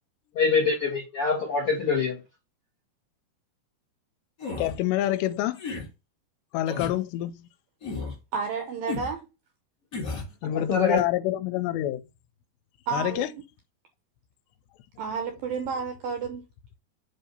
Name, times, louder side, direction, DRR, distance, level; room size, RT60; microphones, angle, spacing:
voice 1, 0.3-2.2 10.5-11.0, left 5 dB, 60° left, 1.4 m, -24 dB
sound 1, 4.4-4.8 5.5-5.9 6.6-7.0 7.8-8.2 8.9-9.1 9.9-10.3, left 4 dB, 45° left, 1.1 m, -33 dB
voice 2, 4.6-5.6 6.5-7.5 10.4-12.0 12.9-13.3, left 13 dB, 85° left, 2.7 m, -27 dB
voice 3, 8.3-9.3 12.9-13.3 15.0-16.5, right 6 dB, 75° right, 2.1 m, -31 dB
7.6 x 2.8 x 5.2 m
omnidirectional pair, 5.1 m